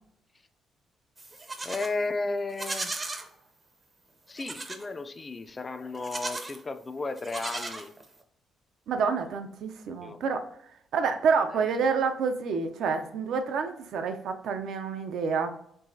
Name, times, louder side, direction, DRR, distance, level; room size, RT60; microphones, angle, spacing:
Livestock farm animals working animals, 1.2-1.9 2.5-3.3 4.4-4.9 5.9-6.6 7.2-8.2, right 2 dB, 25° right, 0.6 m, -36 dB
voice 1, 1.6-3.0 4.3-7.9 10.0-10.2 11.5-11.7, left 3 dB, 30° left, 9 dB, 0.4 m, -34 dB
voice 2, 8.9-10.5 10.9-15.5, right 5 dB, 75° right, 7 dB, 0.5 m, -28 dB
4.6 x 3.1 x 2.7 m, 0.72 s
cardioid pair, 90°, 0 cm